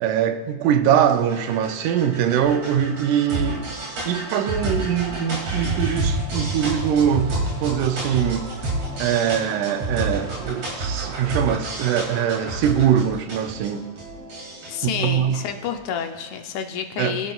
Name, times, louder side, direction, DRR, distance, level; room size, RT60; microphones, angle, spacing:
voice 1, 0.0-3.7 4.1-8.5 9.0-13.9 14.8-15.4 17.0-17.2, right 9 dB, 90° right, 2.2 m, -22 dB
sound 1, 0.6-16.2, right 2 dB, 55° right, 3.5 m, -30 dB
voice 2, 3.3-3.6 14.7-17.3, left 7 dB, 75° left, 2.0 m, -29 dB
20.5 x 11.0 x 2.4 m
omnidirectional pair, 3.5 m